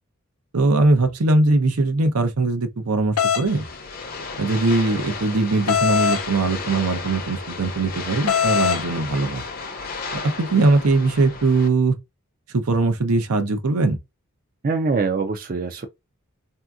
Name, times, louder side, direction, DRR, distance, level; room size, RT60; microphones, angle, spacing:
voice 1, 0.5-3.6 4.4-9.4 10.1-11.9 12.5-14.0, right 3 dB, 85° right, 0.7 m, -20 dB
sound 1, 3.2-3.5 5.7-6.2 8.3-8.8, left 8 dB, 85° left, 0.5 m, -20 dB
sound 2, 3.5-11.7, left 4 dB, 40° left, 0.6 m, -33 dB
voice 2, 14.6-15.9, right 4 dB, 40° right, 0.4 m, -23 dB
3.5 x 2.7 x 2.3 m
head